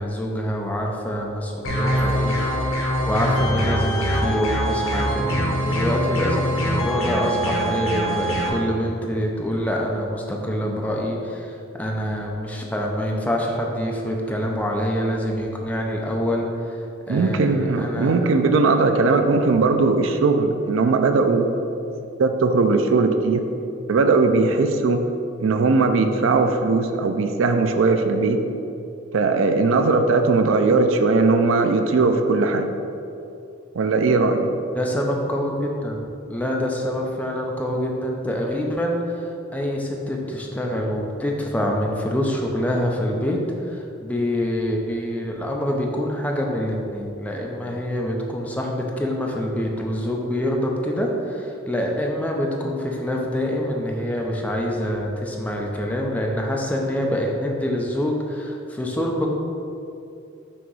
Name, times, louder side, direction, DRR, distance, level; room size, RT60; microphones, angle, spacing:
voice 1, 0.0-2.4 2.6-16.8 17.1-18.2 34.7-36.0 36.3-59.3, equal, 5° left, -1 dB, 0.5 m, -26 dB
sound 1, 1.6-8.5, equal, 85° left, 1.0 m, -23 dB
voice 2, 17.1-21.5 22.2-23.4 23.9-25.0 25.4-28.4 29.1-32.7 33.8-34.5, right 3 dB, 70° right, 7 dB, 0.4 m, -19 dB
6.1 x 2.9 x 5.3 m, 2.7 s
head